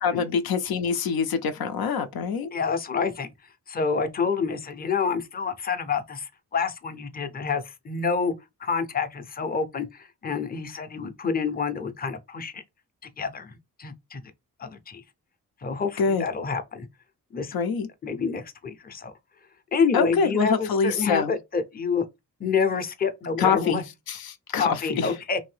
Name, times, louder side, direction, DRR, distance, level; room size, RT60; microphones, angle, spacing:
voice 1, 0.0-2.5 16.0-16.2 17.5-17.9 19.9-21.3 23.4-25.1, left 6 dB, 85° left, 0.5 m, -25 dB
voice 2, 2.5-3.3 3.7-8.3 8.6-12.6 13.0-14.2 14.6-15.0 15.6-16.9 17.3-17.5 18.0-19.1 19.7-22.0 22.4-23.8 24.6-25.4, left 5 dB, 25° left, 0.5 m, -28 dB
2.7 x 2.6 x 3.2 m
cardioid pair, 70°, 35 cm